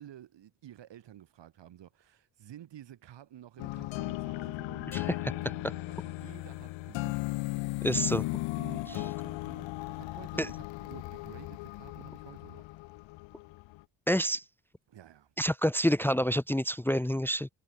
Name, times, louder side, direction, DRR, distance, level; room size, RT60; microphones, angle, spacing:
voice 1, 0.0-8.0 8.6-12.6 14.9-15.3, right 11 dB, 70° right, 6.8 m, -51 dB
sound 1, 3.6-13.8, left 22 dB, 85° left, 1.5 m, -36 dB
voice 2, 7.8-8.2 10.4-10.5 14.1-14.4 15.4-17.5, equal, 5° left, 1.0 m, -28 dB
supercardioid pair, 55°, 44 cm